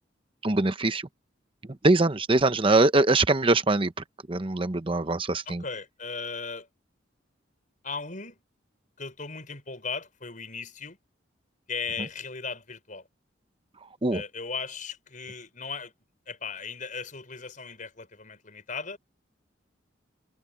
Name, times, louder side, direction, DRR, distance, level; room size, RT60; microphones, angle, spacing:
voice 1, 0.4-1.0 1.8-3.9 4.3-5.6 14.0-14.2, right 2 dB, 30° right, 0.8 m, -22 dB
voice 2, 5.5-6.7 7.8-8.4 9.0-11.0 11.7-13.1 14.1-15.9 16.3-19.0, left 5 dB, 45° left, 5.9 m, -37 dB
head